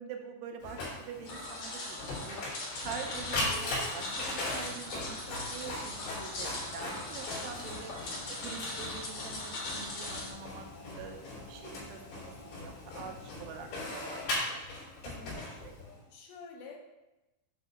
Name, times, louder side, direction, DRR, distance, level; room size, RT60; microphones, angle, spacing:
voice 1, 0.0-2.4 2.8-7.9 8.3-10.7 10.9-14.6 15.0-15.7, right 6 dB, 85° right, 3 dB, 3.3 m, -45 dB
Printer, 0.6-16.0, left 2 dB, 70° left, 5.1 m, -39 dB
sound 1, 1.2-10.3, left 2 dB, 55° left, 2.0 m, -40 dB
voice 2, 15.0-15.5 16.1-16.8, left 5 dB, 85° left, -1 dB, 3.8 m, -49 dB
9.2 x 3.3 x 6.4 m, 1.0 s
omnidirectional pair, 5.6 m